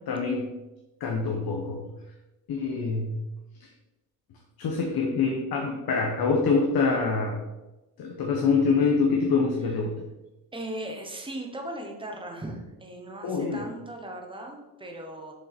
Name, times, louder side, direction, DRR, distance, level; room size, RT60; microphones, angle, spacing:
voice 1, 0.1-0.4 1.0-1.8 2.5-3.1 3.6-3.7 4.6-7.4 8.0-9.9 13.2-13.6, left 4 dB, 65° left, 0 dB, 1.1 m, -25 dB
voice 2, 10.5-15.3, right 1 dB, 15° right, 2 dB, 1.0 m, -38 dB
6.7 x 5.5 x 4.3 m, 1.0 s
wide cardioid pair, 180°, 39 cm